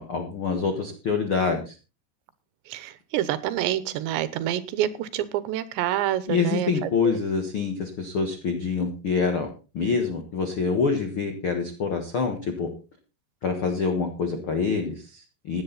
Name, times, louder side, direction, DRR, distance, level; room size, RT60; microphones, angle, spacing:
voice 1, 0.0-1.7 6.3-9.5 9.7-12.7 13.4-15.6, left 5 dB, 70° left, 5 dB, 1.2 m, -26 dB
voice 2, 2.7-7.2, right 12 dB, 90° right, 16 dB, 3.2 m, -27 dB
16.0 x 10.5 x 4.1 m, 0.32 s
omnidirectional pair, 5.0 m